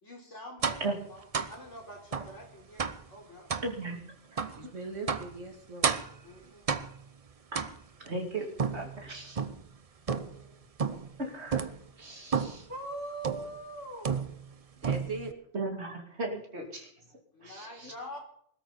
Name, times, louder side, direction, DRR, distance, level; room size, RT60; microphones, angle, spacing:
voice 1, 0.0-3.6 6.2-6.9 10.1-10.6 12.7-14.2 17.3-18.2, right 1 dB, 75° left, -1 dB, 4.7 m, -44 dB
sound 1, 0.6-0.9 1.3-1.6 2.1-2.3 2.8-3.1 3.5-3.7 4.4-4.6 5.1-5.4 5.8-6.2 6.7-7.1 7.5-8.1 8.6-9.7 10.1-10.5 10.8-11.2 11.5-11.8 12.3-12.7 13.2-13.6 14.0-14.5 14.8-15.3, right 6 dB, 35° right, 0.7 m, -31 dB
voice 2, 3.6-4.0 4.3-4.4 7.5-7.7 8.0-8.5 8.7-9.4 11.2-11.7 12.0-12.7 15.5-16.9 17.4-17.7, right 2 dB, 65° right, 1 dB, 3.1 m, -36 dB
voice 3, 4.5-6.0 14.8-15.3 17.8-17.9, right 3 dB, 90° right, 3 dB, 3.0 m, -40 dB
20.5 x 13.0 x 4.2 m, 0.68 s
omnidirectional pair, 1.2 m